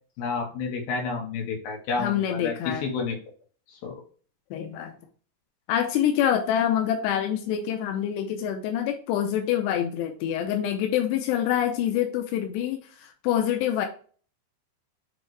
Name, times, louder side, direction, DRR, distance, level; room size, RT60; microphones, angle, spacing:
voice 1, 0.2-3.2 3.7-4.0, left 4 dB, 60° left, 0 dB, 2.9 m, -30 dB
voice 2, 2.0-2.9 4.5-5.0 5.7-13.9, left 10 dB, 85° left, 3 dB, 2.4 m, -26 dB
8.2 x 3.5 x 3.3 m, 0.42 s
omnidirectional pair, 5.6 m